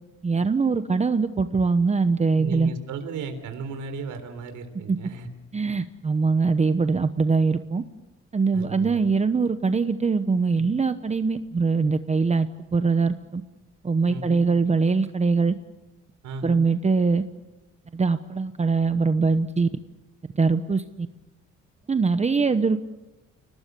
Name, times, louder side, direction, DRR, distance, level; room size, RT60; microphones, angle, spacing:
voice 1, 0.2-2.7 4.9-5.0 5.5-7.8 8.3-13.4 13.8-15.6 16.4-17.2 17.9-19.7 20.3-21.1 21.9-22.8, right 4 dB, 25° right, 10 dB, 0.9 m, -22 dB
voice 2, 2.4-5.3 8.5-9.1 14.1-14.4 16.2-16.6, right 4 dB, 85° right, 7 dB, 3.8 m, -35 dB
29.5 x 19.0 x 6.9 m, 1.0 s
cardioid pair, 115°, 29 cm